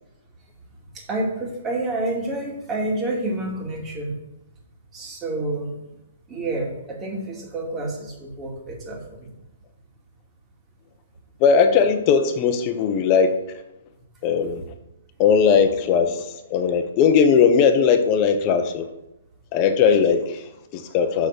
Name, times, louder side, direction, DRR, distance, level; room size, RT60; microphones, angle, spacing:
voice 1, 0.9-4.2 4.9-5.8 6.3-9.3, right 2 dB, 20° right, -1 dB, 2.6 m, -28 dB
voice 2, 11.4-13.6 14.2-14.6 15.2-18.9 19.5-21.3, left 6 dB, 35° left, 7 dB, 1.1 m, -19 dB
6.3 x 6.2 x 6.8 m, 0.90 s
hypercardioid pair, 145°, 0 cm